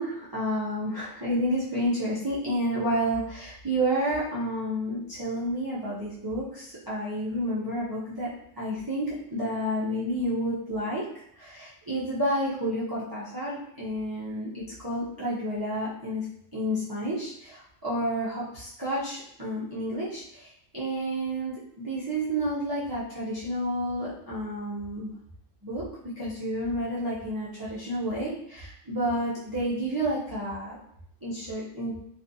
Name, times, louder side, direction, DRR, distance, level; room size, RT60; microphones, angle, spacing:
voice 1, 0.0-8.3 8.6-11.1 11.3-16.2 16.5-25.1 25.6-25.8 26.2-30.8 31.2-31.9, equal, 30° right, -10 dB, 0.4 m, -30 dB
2.4 x 2.4 x 2.6 m, 0.70 s
omnidirectional pair, 1.3 m